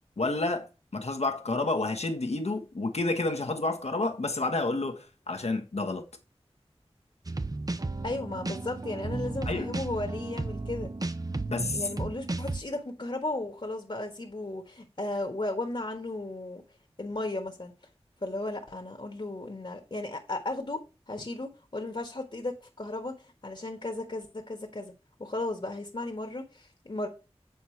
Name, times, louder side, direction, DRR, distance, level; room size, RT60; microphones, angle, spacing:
voice 1, 0.2-6.0 9.4-9.7 11.5-11.8, left 2 dB, 80° left, 1.2 m, -30 dB
sound 1, 7.3-12.6, right 2 dB, 35° right, 0.6 m, -34 dB
voice 2, 8.0-10.9 11.7-16.6 17.0-17.7 18.2-20.8 21.1-24.9 25.2-27.1, left 2 dB, 55° left, 1.4 m, -35 dB
8.2 x 4.5 x 4.5 m
wide cardioid pair, 50°, 11 cm